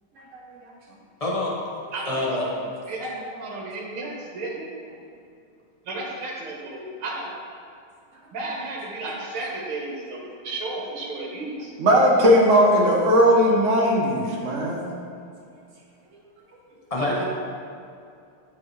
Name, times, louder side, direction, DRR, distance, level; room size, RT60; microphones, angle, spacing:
voice 1, 1.2-1.5 2.0-2.5 16.9-17.2, left 2 dB, 25° left, -5 dB, 0.8 m, -25 dB
voice 2, 2.9-4.7 5.9-7.4 8.3-11.7 17.0-17.2, right 2 dB, 80° right, -2 dB, 2.1 m, -33 dB
voice 3, 11.8-14.9, equal, 50° right, -2 dB, 1.0 m, -18 dB
11.5 x 4.2 x 3.1 m, 2.5 s
omnidirectional pair, 2.4 m